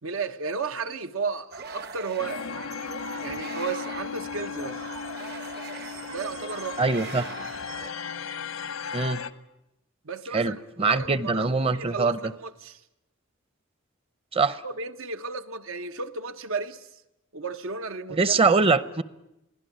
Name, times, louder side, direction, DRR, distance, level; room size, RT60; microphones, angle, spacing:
voice 1, 0.0-2.4 3.2-4.8 6.1-6.9 10.0-11.5 11.7-12.8 14.5-17.0 17.3-18.4, right 4 dB, 85° right, 1.1 m, -33 dB
sound 1, 1.5-7.9, right 5 dB, 50° right, 1.0 m, -41 dB
sound 2, 2.2-9.3, left 6 dB, 85° left, 1.0 m, -36 dB
voice 2, 6.8-7.3 8.9-9.2 10.3-12.3 14.3-14.6 18.1-19.0, right 4 dB, 30° right, 0.8 m, -23 dB
24.5 x 16.5 x 9.3 m
head